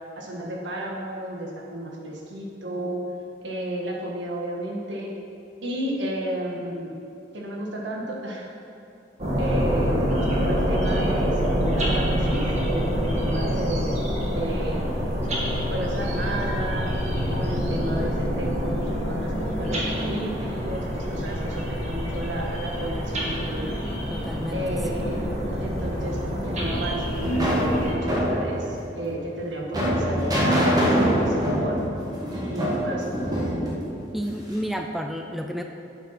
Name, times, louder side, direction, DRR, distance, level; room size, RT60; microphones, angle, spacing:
voice 1, 0.0-3.0 3.4-5.1 5.6-7.0 7.3-8.5 9.4-14.0 14.3-14.9 15.7-17.0 17.3-23.8 24.5-25.3 25.6-31.8 32.3-33.8, right 1 dB, 70° right, -1 dB, 1.7 m, -32 dB
sound 1, 9.2-27.9, equal, 40° right, 2.0 m, -26 dB
voice 2, 24.1-25.1 34.1-35.6, equal, ahead, 3 dB, 0.4 m, -31 dB
sound 2, 26.6-34.7, equal, 20° right, 1.5 m, -25 dB
8.6 x 7.9 x 5.8 m, 2.8 s
head